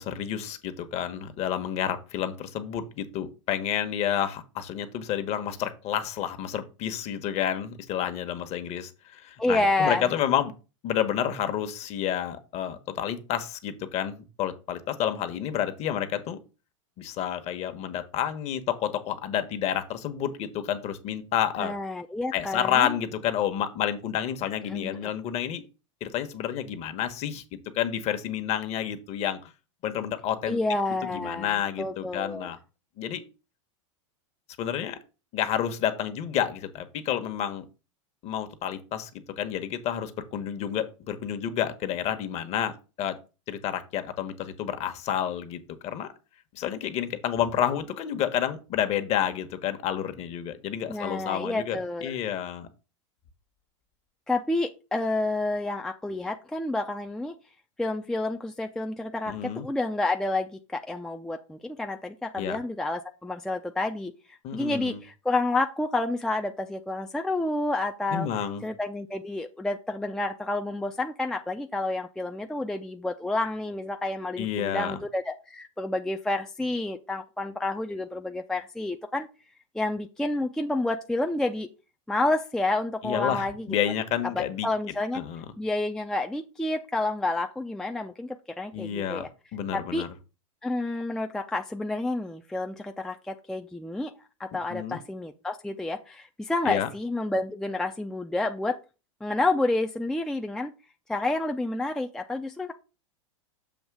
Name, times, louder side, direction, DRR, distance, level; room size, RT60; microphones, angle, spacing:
voice 1, 0.0-10.5 10.8-16.4 17.0-21.7 22.3-25.6 26.0-27.4 27.7-29.5 29.8-30.6 31.1-32.6 33.0-33.2 34.6-35.0 35.3-37.6 38.2-39.1 39.4-43.2 43.5-46.1 46.5-52.7 59.2-59.6 62.4-62.6 64.4-65.0 68.1-68.6 74.4-75.0 83.0-84.7 85.1-85.4 88.7-89.3 89.5-90.1 94.7-95.0 96.7-96.9, left 10 dB, 40° left, 8 dB, 1.2 m, -30 dB
voice 2, 9.4-10.1 21.6-22.9 24.7-25.0 30.5-32.5 50.9-52.2 54.3-57.4 57.8-68.3 68.6-79.3 79.7-81.7 82.1-83.8 84.3-85.2 85.6-89.3 89.7-90.1 90.6-94.1 94.4-98.8 99.2-100.7 101.1-102.7, left 2 dB, 5° left, 4 dB, 0.5 m, -29 dB
7.2 x 3.1 x 6.0 m, 0.31 s
hypercardioid pair, 115°, 16 cm